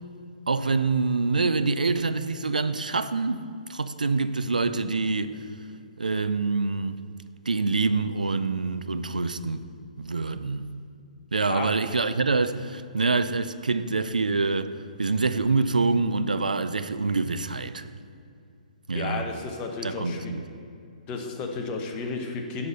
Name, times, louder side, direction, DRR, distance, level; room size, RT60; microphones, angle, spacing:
voice 1, 0.5-3.4 3.7-5.4 6.0-7.0 7.5-9.6 10.0-10.7 11.3-17.9 18.9-19.3 19.8-20.4, right 3 dB, 80° right, 0.4 m, -26 dB
voice 2, 18.9-20.3 21.1-22.7, left 4 dB, 25° left, 1.0 m, -33 dB
11.0 x 4.2 x 6.6 m
figure-of-eight pair, 130°, 4 cm